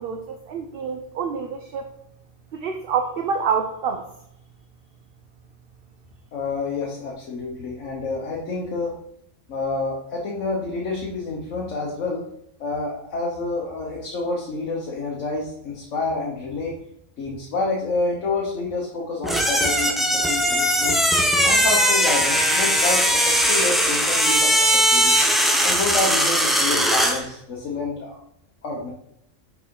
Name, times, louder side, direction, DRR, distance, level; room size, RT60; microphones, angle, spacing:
voice 1, 0.0-1.9 2.5-4.1, right 6 dB, 60° right, 5 dB, 0.7 m, -27 dB
voice 2, 6.3-8.9 9.5-12.2 12.6-16.7 17.2-21.0 21.4-25.2 25.6-28.2 28.6-28.9, left 3 dB, 70° left, -2 dB, 1.4 m, -28 dB
sound 1, 19.2-27.2, equal, ahead, 0.5 m, -19 dB
6.1 x 4.8 x 3.7 m, 0.75 s
omnidirectional pair, 1.3 m